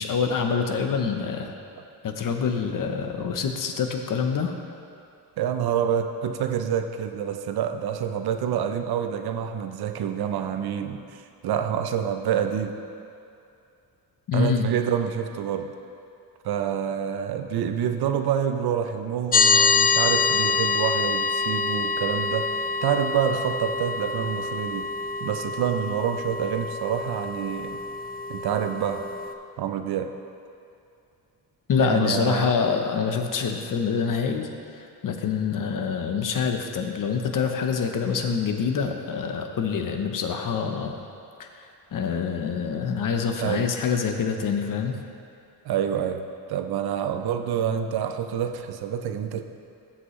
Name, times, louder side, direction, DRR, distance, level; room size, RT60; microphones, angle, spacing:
voice 1, 0.0-1.5 2.0-4.5 14.3-14.7 31.7-34.5 34.8-41.0 41.4-45.0, left 6 dB, 50° left, 5 dB, 0.8 m, -26 dB
voice 2, 5.4-12.7 14.3-15.7 16.4-24.9 25.2-27.8 28.3-29.1 29.6-30.2 31.8-32.5 43.4-43.7 45.7-49.4, right 8 dB, 60° right, 7 dB, 0.6 m, -27 dB
sound 1, 19.3-29.3, left 4 dB, 25° left, 0.4 m, -26 dB
14.0 x 5.8 x 3.1 m, 2.5 s
cardioid pair, 105°, 42 cm